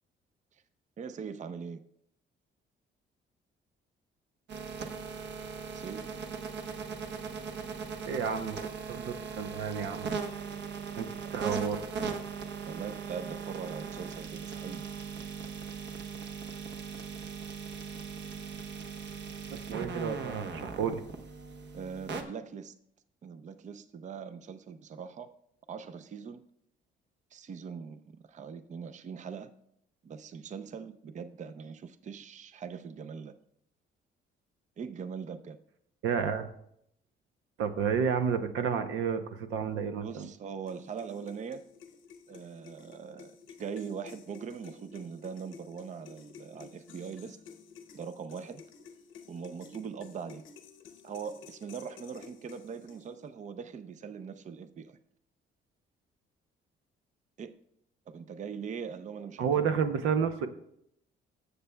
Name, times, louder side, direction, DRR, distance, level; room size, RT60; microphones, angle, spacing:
voice 1, 1.0-1.8 5.7-6.1 11.2-11.3 12.7-14.9 21.7-22.8 23.2-25.3 25.7-26.4 27.3-29.5 30.0-33.3 34.8-35.6 39.9-41.6 42.3-43.3 43.6-47.4 47.9-48.6 49.3-50.4 51.0-55.0 57.4-57.5 58.1-59.6, right 6 dB, 40° right, 10 dB, 0.5 m, -41 dB
sound 1, 4.5-22.2, right 5 dB, 60° right, 1.0 m, -39 dB
voice 2, 8.1-8.6 8.9-10.1 11.0-11.8 19.5-21.0 36.0-36.5 37.6-39.2 39.5-40.3 59.4-60.5, right 6 dB, 85° right, 8 dB, 0.7 m, -31 dB
sound 2, 40.7-53.3, left 6 dB, 85° left, 0.9 m, -53 dB
19.5 x 6.7 x 2.2 m, 0.74 s
cardioid pair, 90°, 20 cm